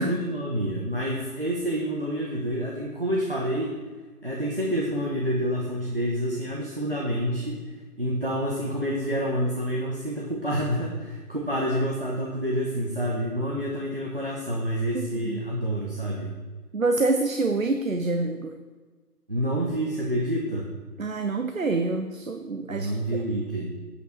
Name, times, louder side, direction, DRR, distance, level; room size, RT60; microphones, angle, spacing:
voice 1, 0.0-3.8 4.2-16.3 19.3-20.7 22.7-23.7, equal, 35° right, -3 dB, 1.0 m, -28 dB
voice 2, 16.7-18.6 21.0-22.9, right 3 dB, 60° right, 6 dB, 0.7 m, -26 dB
8.4 x 7.5 x 4.3 m, 1.4 s
figure-of-eight pair, 170°, 47 cm